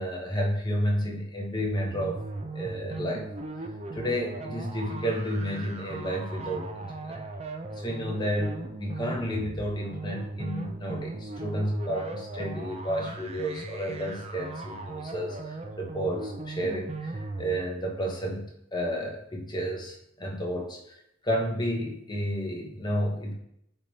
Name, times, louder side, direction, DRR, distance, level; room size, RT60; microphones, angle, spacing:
voice 1, 0.0-2.2 2.5-3.3 3.9-7.3 7.7-20.9 21.2-23.3, equal, 20° left, 0 dB, 1.1 m, -31 dB
sound 1, 1.6-17.6, right 2 dB, 30° right, 0.5 m, -38 dB
8.0 x 3.5 x 4.1 m, 0.77 s
head